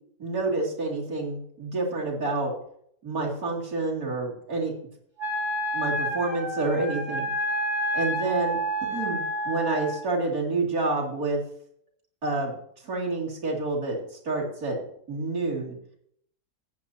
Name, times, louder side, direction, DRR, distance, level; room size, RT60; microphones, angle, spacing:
voice 1, 0.2-2.5 3.0-4.7 5.7-7.3 7.9-11.4 12.2-12.6 12.8-14.0 14.2-14.8 15.1-15.8, right 3 dB, 60° right, -3 dB, 3.2 m, -28 dB
Wind instrument woodwind instrument, 5.2-10.1, equal, 15° right, 2.3 m, -29 dB
15.0 x 8.8 x 2.8 m, 0.67 s
omnidirectional pair, 1.8 m